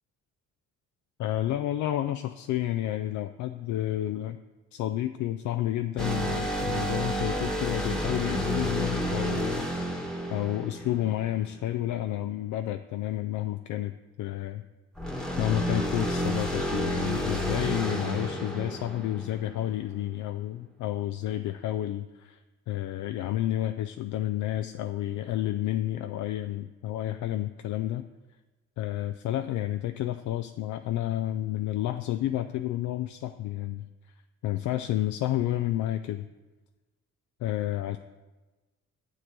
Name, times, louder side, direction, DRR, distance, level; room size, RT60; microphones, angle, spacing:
voice 1, 1.2-4.4 4.7-9.7 10.3-14.6 15.4-22.4 22.7-28.1 28.8-33.9 34.4-36.3 37.4-38.0, left 13 dB, 75° left, 8 dB, 0.4 m, -30 dB
sound 1, 6.0-11.5 15.0-19.7, equal, ahead, 1.3 m, -30 dB
9.4 x 8.1 x 3.8 m, 1.2 s
cardioid pair, 90°, 30 cm